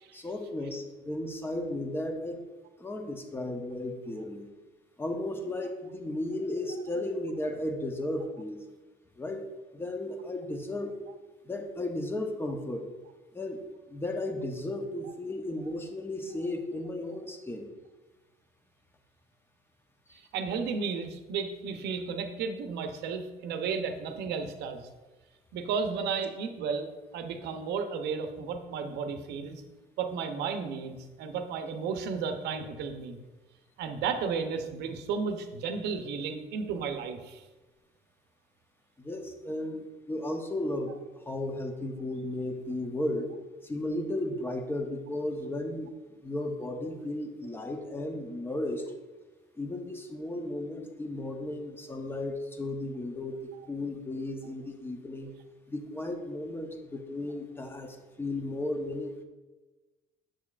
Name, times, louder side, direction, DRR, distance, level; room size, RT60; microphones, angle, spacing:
voice 1, 0.1-2.4 2.8-4.5 5.0-8.6 9.2-9.4 9.7-11.0 11.4-12.9 13.3-13.6 13.9-17.7 20.1-20.2 39.0-40.9 41.3-43.3 43.6-45.9 46.2-48.8 49.6-53.4 53.7-55.3 55.7-59.2, left 1 dB, 15° left, 4 dB, 0.8 m, -34 dB
voice 2, 20.1-24.8 25.5-29.6 30.0-33.2 33.8-37.4, right 5 dB, 80° right, 6 dB, 0.7 m, -33 dB
7.5 x 6.6 x 2.4 m, 1.2 s
cardioid pair, 110°, 17 cm